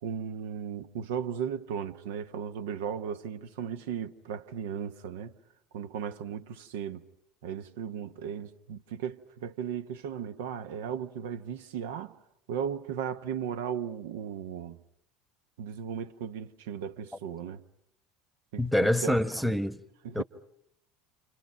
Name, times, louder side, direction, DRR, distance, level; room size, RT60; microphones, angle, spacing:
voice 1, 0.0-5.3 5.7-7.1 7.4-12.2 12.5-14.8 15.6-17.6 18.5-18.6 19.0-19.2 20.0-20.2, right 8 dB, 65° right, 1.0 m, -36 dB
voice 2, 18.6-19.8 20.1-20.2, left 1 dB, ahead, 1.2 m, -26 dB
29.0 x 28.5 x 5.8 m
figure-of-eight pair, 70°, 0 cm